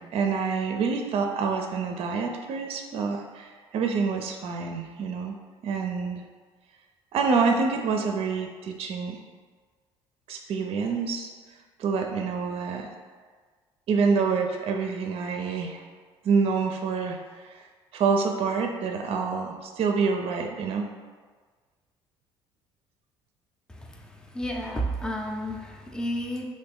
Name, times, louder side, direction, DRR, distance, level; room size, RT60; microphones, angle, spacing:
voice 1, 0.0-5.4 5.6-6.2 7.1-9.2 10.3-11.3 11.8-12.9 13.9-15.8 16.2-17.6 17.9-20.9, right 5 dB, 50° right, 4 dB, 0.4 m, -27 dB
voice 2, 23.7-26.4, equal, 5° left, 1 dB, 0.5 m, -32 dB
2.9 x 2.6 x 3.6 m, 1.5 s
hypercardioid pair, 65°, 12 cm